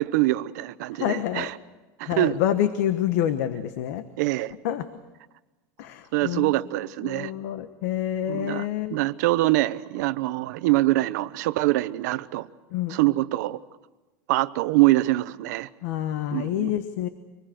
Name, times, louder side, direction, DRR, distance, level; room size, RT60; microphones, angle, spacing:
voice 1, 0.0-1.5 2.0-2.3 4.2-4.5 6.1-7.3 8.3-12.5 12.9-13.6 14.3-15.7 16.3-16.7, right 18 dB, 75° right, 14 dB, 0.9 m, -24 dB
voice 2, 0.9-1.5 2.0-4.1 4.6-4.9 5.8-6.5 7.0-9.0 12.7-13.0 15.8-17.1, left 11 dB, 65° left, 10 dB, 1.2 m, -27 dB
25.5 x 20.0 x 7.8 m, 1.2 s
cardioid pair, 180°, 9 cm